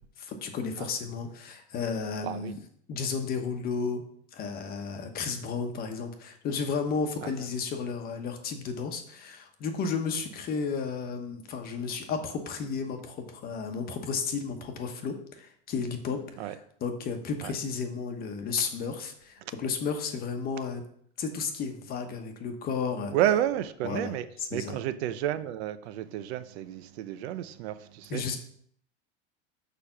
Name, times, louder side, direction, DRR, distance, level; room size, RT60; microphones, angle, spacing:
voice 1, 0.2-2.6 2.9-4.0 4.3-20.8 21.2-23.1 23.8-24.8 28.1-28.4, left 5 dB, 30° left, 1.0 m, -33 dB
voice 2, 2.2-2.5 7.2-7.3 16.4-16.5 17.4-17.5 23.1-24.3 24.5-28.2, right 11 dB, 75° right, 0.7 m, -30 dB
6.7 x 5.0 x 5.8 m
supercardioid pair, 155°, 32 cm